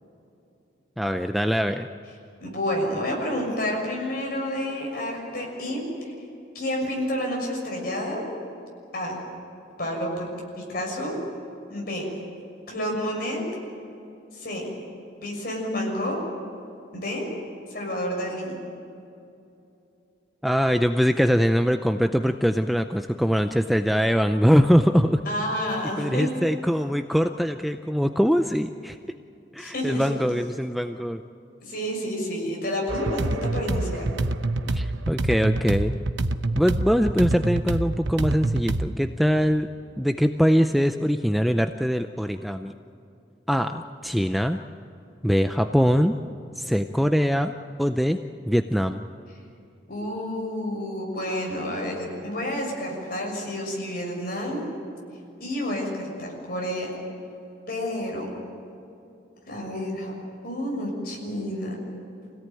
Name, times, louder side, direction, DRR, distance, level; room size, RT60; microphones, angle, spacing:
voice 1, 1.0-1.9 20.4-25.2 26.0-29.0 29.5-31.2 34.7-35.9 36.6-39.7 40.0-42.7 43.5-44.6 45.2-46.2 46.6-47.5 47.8-48.2 48.5-49.0, equal, ahead, 7 dB, 0.5 m, -22 dB
voice 2, 2.4-6.1 6.5-8.2 8.9-9.2 9.8-10.3 10.6-11.1 11.7-12.0 12.7-13.4 14.3-14.7 15.2-16.2 16.9-17.3 17.7-18.6 25.2-26.3 29.6-30.1 31.6-34.1 49.9-54.6 55.4-56.9 57.7-58.2 59.5-60.1 60.4-61.8, left 1 dB, 50° left, -1 dB, 6.5 m, -29 dB
sound 1, 32.9-38.9, right 2 dB, 80° right, 0.9 m, -26 dB
26.0 x 17.5 x 9.2 m, 2.7 s
head